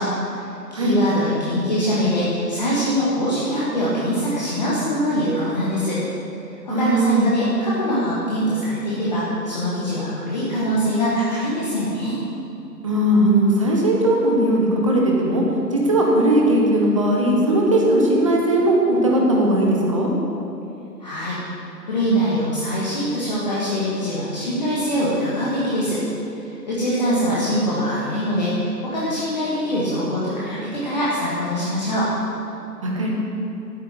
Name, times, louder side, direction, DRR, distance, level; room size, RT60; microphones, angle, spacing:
voice 1, 0.0-6.0 6.6-12.2 21.0-21.4 21.8-26.0 26.3-32.1, equal, 25° left, -8 dB, 1.6 m, -23 dB
voice 2, 6.7-7.2 12.8-15.4 15.7-20.1 32.8-33.1, right 1 dB, 20° right, -2 dB, 1.2 m, -18 dB
12.0 x 9.1 x 6.2 m, 2.9 s
figure-of-eight pair, 155°, 50 cm